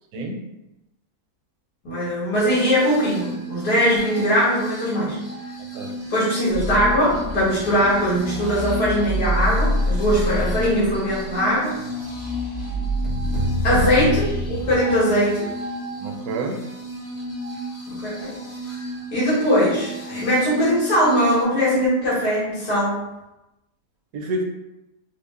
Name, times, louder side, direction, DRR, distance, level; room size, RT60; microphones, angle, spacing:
voice 1, 1.8-5.2 6.1-11.8 13.6-15.5 17.9-18.4 19.1-23.0, equal, 85° left, -8 dB, 2.0 m, -21 dB
sound 1, 2.5-21.4, equal, 15° left, 0.5 m, -34 dB
sound 2, 6.5-14.8, equal, 50° left, 1.0 m, -27 dB
sound 3, 13.0-15.3, right 1 dB, 65° left, 1.7 m, -27 dB
voice 2, 16.0-16.6 24.1-24.4, right 2 dB, 75° right, 1 dB, 1.0 m, -28 dB
3.6 x 2.0 x 3.7 m, 0.95 s
omnidirectional pair, 1.7 m